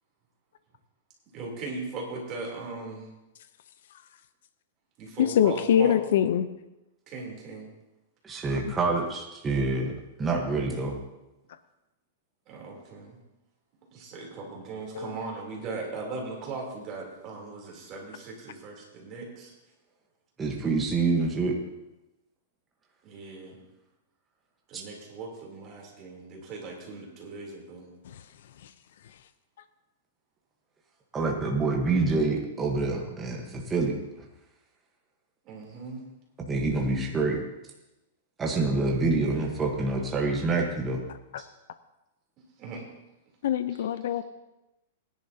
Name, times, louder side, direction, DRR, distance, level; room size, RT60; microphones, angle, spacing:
voice 1, 1.3-3.1 5.0-6.0 7.1-7.7 12.5-13.2 13.9-19.5 23.0-23.6 24.7-27.9 35.4-36.1 39.2-39.7 42.6-42.8 43.8-44.2, right 3 dB, 25° right, -2 dB, 3.2 m, -39 dB
voice 2, 5.2-6.5 14.9-15.1 43.4-44.2, left 9 dB, 60° left, 12 dB, 0.6 m, -23 dB
voice 3, 8.2-9.9 10.2-11.0 20.4-21.6 24.7-24.8 31.1-33.9 36.5-37.4 38.4-41.0, right 3 dB, 10° right, 0 dB, 1.1 m, -26 dB
18.0 x 10.5 x 2.8 m, 0.97 s
supercardioid pair, 165°, 0 cm